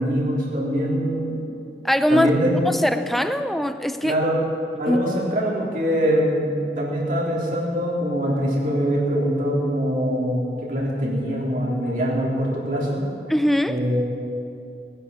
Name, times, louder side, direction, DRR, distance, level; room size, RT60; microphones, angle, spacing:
voice 1, 0.0-1.4 2.1-2.5 4.0-4.4 4.8-13.0 13.7-14.0, equal, 50° right, -4 dB, 3.6 m, -23 dB
voice 2, 1.8-2.3 2.6-4.2 4.9-5.0 13.3-13.8, equal, ahead, 9 dB, 0.5 m, -21 dB
19.0 x 10.0 x 7.1 m, 2.7 s
head